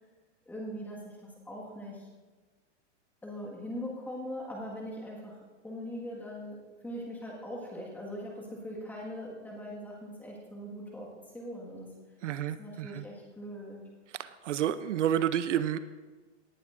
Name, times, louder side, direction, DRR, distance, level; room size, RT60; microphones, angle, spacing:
voice 1, 0.5-2.1 3.2-11.1 11.3-11.9 12.6-13.8, equal, 5° left, -3 dB, 1.7 m, -41 dB
voice 2, 12.2-13.0 14.2-15.8, right 10 dB, 75° right, 13 dB, 0.7 m, -30 dB
18.0 x 11.0 x 2.6 m, 1.3 s
hypercardioid pair, 160°, 37 cm